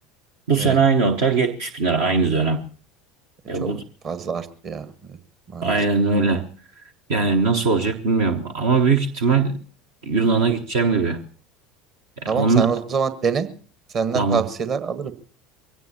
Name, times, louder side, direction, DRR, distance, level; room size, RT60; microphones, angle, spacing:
voice 1, 0.5-2.6 3.5-3.8 5.6-6.4 7.1-9.6 10.1-11.2 12.2-12.7 14.1-14.4, right 4 dB, 65° right, 4 dB, 0.9 m, -20 dB
voice 2, 4.0-5.2 5.5-5.7 12.3-13.5 13.9-15.1, right 6 dB, 40° right, 11 dB, 1.4 m, -25 dB
22.5 x 17.0 x 2.8 m, 0.42 s
figure-of-eight pair, 70°, 0 cm